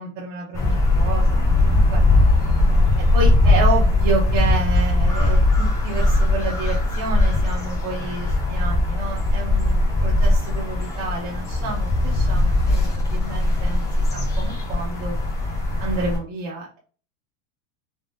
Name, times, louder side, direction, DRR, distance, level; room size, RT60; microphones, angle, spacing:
voice 1, 0.0-2.0 3.0-15.2 15.8-16.8, right 3 dB, 40° right, -3 dB, 0.7 m, -30 dB
sound 1, 0.5-16.2, left 2 dB, 10° left, 0.3 m, -19 dB
3.5 x 2.4 x 2.6 m, 0.39 s
supercardioid pair, 145°, 39 cm